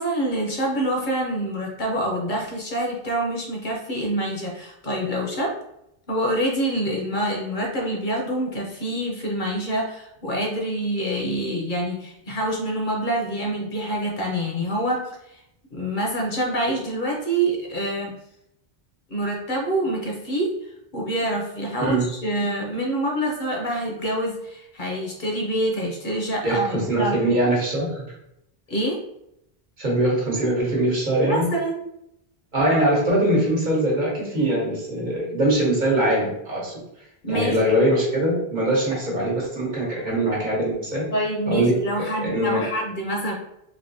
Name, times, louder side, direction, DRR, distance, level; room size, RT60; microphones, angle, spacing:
voice 1, 0.0-5.6 6.1-15.4 15.7-18.1 19.1-20.5 20.9-27.2 28.7-29.0 31.2-31.8 37.2-37.6 41.1-43.3, right 1 dB, 55° left, -1 dB, 0.8 m, -26 dB
voice 2, 26.4-28.0 29.8-31.5 32.5-36.7 37.3-41.1 41.5-42.7, right 1 dB, 50° right, -4 dB, 1.1 m, -22 dB
3.4 x 2.8 x 2.7 m, 0.80 s
omnidirectional pair, 1.0 m